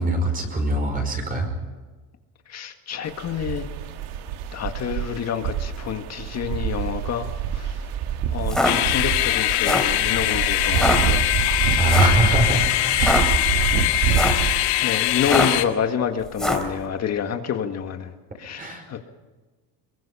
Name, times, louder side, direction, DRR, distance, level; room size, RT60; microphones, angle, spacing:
voice 1, 0.0-1.5 11.7-12.7 12.9-13.2 13.6-13.8 18.6-18.9, right 1 dB, 20° right, 3 dB, 5.3 m, -22 dB
voice 2, 2.5-3.7 4.5-7.9 8.3-11.7 14.4-18.1 18.4-19.0, left 8 dB, 40° left, 6 dB, 1.8 m, -28 dB
sound 1, 3.0-14.6, right 8 dB, 80° right, 2.0 m, -27 dB
sound 2, 8.4-8.7 9.5-10.0 10.7-11.0 11.9-12.2 12.9-13.2 14.0-14.5 15.2-15.6 16.3-16.7, left 1 dB, ahead, 3.0 m, -22 dB
sound 3, 8.6-15.6, left 16 dB, 75° left, 1.9 m, -22 dB
23.0 x 22.0 x 5.7 m, 1.3 s
cardioid pair, 145°, 39 cm